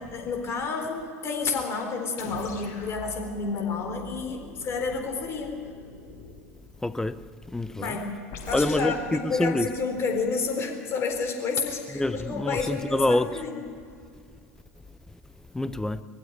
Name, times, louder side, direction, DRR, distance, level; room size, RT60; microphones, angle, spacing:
voice 1, 0.0-5.6 7.8-8.1 8.4-13.6, left 4 dB, 30° left, 4.0 m, -30 dB
sound 1, 2.2-6.5 8.3-9.0, left 5 dB, 45° left, 4.5 m, -43 dB
voice 2, 6.8-8.0 8.5-9.7 11.9-13.4 15.5-16.0, left 1 dB, 5° left, 0.7 m, -26 dB
20.5 x 15.5 x 9.8 m
figure-of-eight pair, 80°, 8 cm